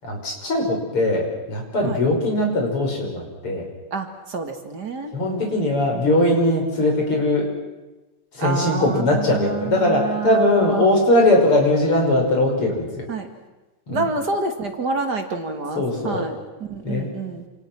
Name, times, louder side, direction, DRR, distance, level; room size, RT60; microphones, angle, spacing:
voice 1, 0.0-3.6 5.1-7.5 8.3-13.1 13.9-14.0 15.8-16.3 16.8-17.1, left 1 dB, 80° left, 1 dB, 6.6 m, -20 dB
voice 2, 3.9-6.5 8.4-10.9 13.1-13.3 13.9-17.5, right 4 dB, 50° right, 5 dB, 2.7 m, -28 dB
28.0 x 28.0 x 6.1 m, 1.1 s
omnidirectional pair, 2.4 m